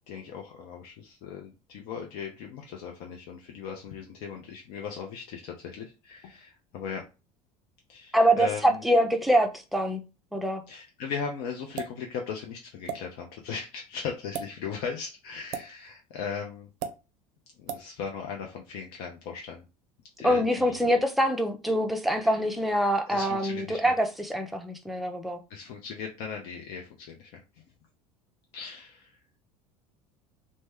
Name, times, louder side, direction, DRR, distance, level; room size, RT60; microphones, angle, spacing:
voice 1, 0.1-7.0 7.9-8.8 10.7-16.7 17.6-19.6 20.2-20.8 22.2-22.4 23.1-23.9 25.5-27.4 28.5-29.1, left 6 dB, 55° left, 0.6 m, -38 dB
voice 2, 8.1-10.0 10.3-10.6 20.2-25.4, equal, ahead, 0.5 m, -25 dB
sound 1, 11.8-12.0 12.9-13.0 14.2-14.5 15.5-15.7 16.8-17.0 17.7-17.9, right 7 dB, 55° right, 0.5 m, -34 dB
3.1 x 2.1 x 3.4 m
figure-of-eight pair, 70°, 20 cm